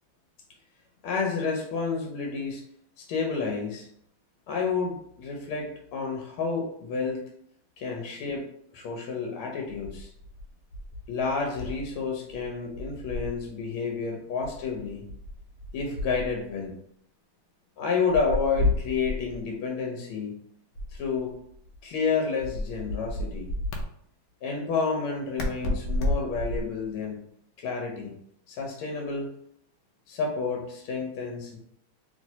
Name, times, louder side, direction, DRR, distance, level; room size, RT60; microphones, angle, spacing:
voice 1, 1.0-2.6 3.0-3.9 4.5-7.2 7.8-8.5 8.7-10.1 11.1-15.0 15.7-16.8 17.8-20.4 20.9-21.3 21.8-23.5 24.4-27.2 27.6-28.1 28.5-29.3 30.1-31.6, left 5 dB, 90° left, 1 dB, 1.5 m, -30 dB
sound 1, 9.7-12.0 12.3-13.5 14.4-16.6 18.1-19.4 20.8-21.8 22.4-23.8 25.4-26.8, left 1 dB, 75° left, 1.1 m, -32 dB
3.2 x 2.9 x 2.7 m, 0.69 s
omnidirectional pair, 2.3 m